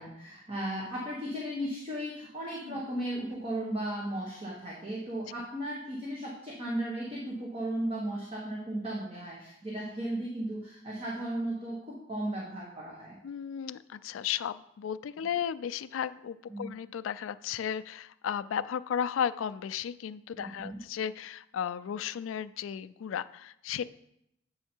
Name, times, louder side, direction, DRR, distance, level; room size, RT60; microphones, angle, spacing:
voice 1, 0.0-13.2 16.5-16.7 20.4-20.8, right 1 dB, 30° right, -4 dB, 1.2 m, -35 dB
voice 2, 13.2-23.8, left 8 dB, 85° left, 14 dB, 0.3 m, -34 dB
8.1 x 5.6 x 4.4 m, 0.81 s
head